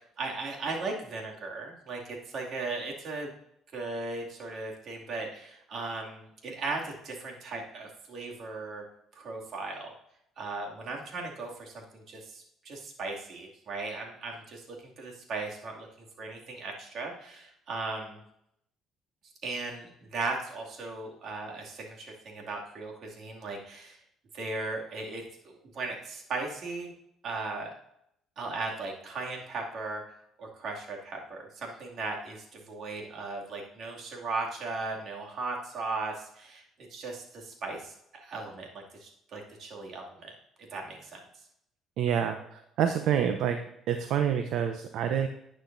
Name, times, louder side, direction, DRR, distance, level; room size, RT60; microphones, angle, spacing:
voice 1, 0.0-3.3 3.7-8.8 9.1-9.9 10.4-15.9 16.2-18.2 19.4-24.0 24.3-26.9 27.2-27.7 28.4-30.0 30.4-36.6 36.9-40.3 40.7-41.2, right 3 dB, 55° right, -1 dB, 2.5 m, -37 dB
voice 2, 42.0-43.6 43.9-45.3, right 8 dB, 70° right, 7 dB, 0.7 m, -27 dB
11.5 x 8.9 x 2.7 m, 0.77 s
cardioid pair, 100°, 0 cm